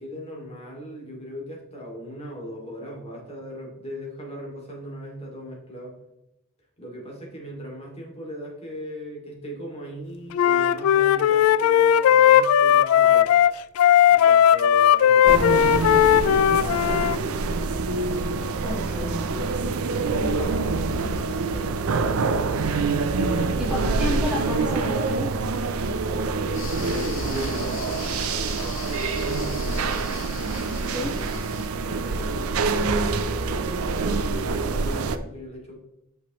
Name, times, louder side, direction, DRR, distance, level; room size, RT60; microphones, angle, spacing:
voice 1, 0.0-6.0 6.8-13.3 14.1-17.2 19.8-22.3 23.3-24.3 26.3-30.1 31.8-35.7, equal, 30° left, -2 dB, 2.5 m, -38 dB
Wind instrument woodwind instrument, 10.3-17.2, left 10 dB, 80° left, 0.3 m, -17 dB
sound 1, 15.3-35.2, right 4 dB, 90° right, 0.6 m, -26 dB
voice 2, 18.6-19.5 20.2-20.6 23.7-25.3 30.9-31.1, left 1 dB, 5° right, -5 dB, 1.5 m, -31 dB
sound 2, 26.5-31.7, left 8 dB, 65° left, 0.8 m, -41 dB
8.6 x 6.6 x 3.1 m, 0.90 s
head